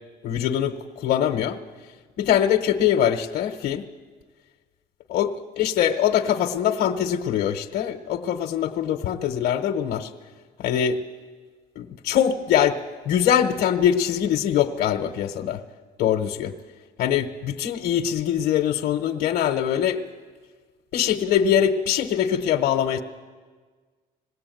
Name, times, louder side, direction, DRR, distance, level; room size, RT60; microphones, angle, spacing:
voice 1, 0.2-1.6 2.2-3.8 5.1-10.1 10.6-11.0 11.8-12.8 13.1-15.6 16.0-16.5 17.0-20.0 20.9-23.0, left 9 dB, 70° left, 4 dB, 1.0 m, -23 dB
20.5 x 16.5 x 9.1 m, 1.5 s
cardioid pair, 110°, 17 cm